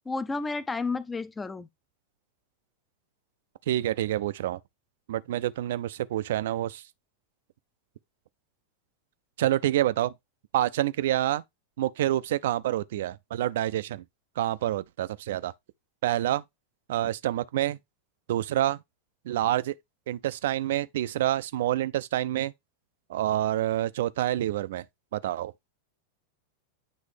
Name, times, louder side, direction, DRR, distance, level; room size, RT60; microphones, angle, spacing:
voice 1, 0.1-1.7, left 3 dB, 15° left, 0.4 m, -31 dB
voice 2, 3.7-4.6 5.1-6.8 9.4-10.1 10.5-11.4 11.8-14.0 14.4-15.5 16.0-16.4 16.9-17.8 18.3-18.8 19.3-19.7 20.1-22.5 23.1-24.8 25.1-25.5, right 13 dB, 55° right, 0.3 m, -27 dB
8.9 x 3.2 x 3.4 m
figure-of-eight pair, 90°, 0 cm